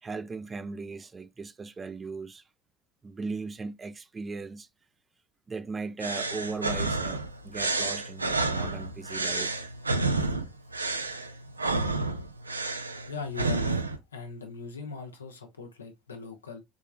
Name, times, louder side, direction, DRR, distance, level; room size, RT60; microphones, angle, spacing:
voice 1, 0.0-2.4 3.0-4.7 5.5-9.5, right 4 dB, 25° right, 0.4 m, -38 dB
sound 1, 6.0-14.0, right 3 dB, 90° right, 0.4 m, -30 dB
voice 2, 13.1-13.8 14.1-16.6, left 4 dB, 85° left, 0.7 m, -39 dB
3.6 x 3.2 x 2.3 m
figure-of-eight pair, 65°, 0 cm